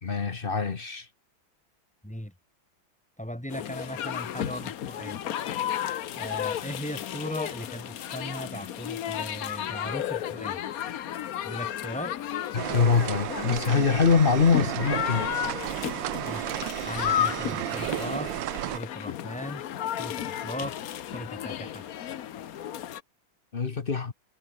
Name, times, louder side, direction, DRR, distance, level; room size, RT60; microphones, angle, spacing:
voice 1, 0.0-1.1 12.5-15.3 23.5-24.1, left 5 dB, 35° left, 1.1 m, -24 dB
voice 2, 3.2-5.2 6.1-10.6 11.4-12.1 16.2-16.5 16.8-18.3 18.7-19.6 20.0-20.8 21.1-21.8, equal, 5° left, 3.5 m, -37 dB
sound 1, 3.5-23.0, left 11 dB, 55° left, 1.1 m, -33 dB
sound 2, 12.6-18.8, right 14 dB, 75° right, 1.4 m, -33 dB
omnidirectional pair, 2.1 m